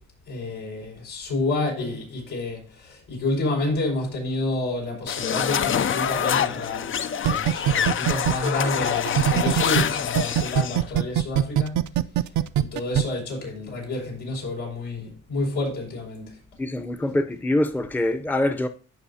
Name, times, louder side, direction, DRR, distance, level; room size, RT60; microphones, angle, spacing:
voice 1, 0.3-6.9 7.2-11.8 12.6-16.4, left 2 dB, 90° left, 5.6 m, -29 dB
sound 1, 5.1-10.8, left 8 dB, 45° left, 0.5 m, -26 dB
sound 2, 7.2-9.8 10.2-13.0, right 12 dB, 70° right, 0.6 m, -21 dB
voice 2, 16.6-18.7, left 1 dB, 5° left, 0.7 m, -24 dB
15.0 x 5.5 x 2.8 m
cardioid pair, 90°, 30 cm